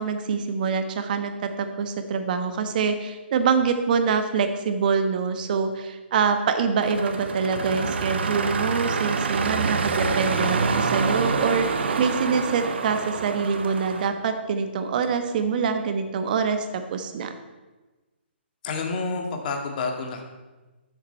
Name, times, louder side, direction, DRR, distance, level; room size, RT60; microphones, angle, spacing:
voice 1, 0.0-17.3, right 5 dB, 45° right, 8 dB, 1.2 m, -25 dB
sound 1, 6.8-14.1, right 4 dB, 65° right, 1.1 m, -26 dB
voice 2, 18.6-20.2, left 4 dB, 45° left, 3 dB, 2.0 m, -29 dB
13.0 x 7.4 x 4.4 m, 1.2 s
hypercardioid pair, 145°, 6 cm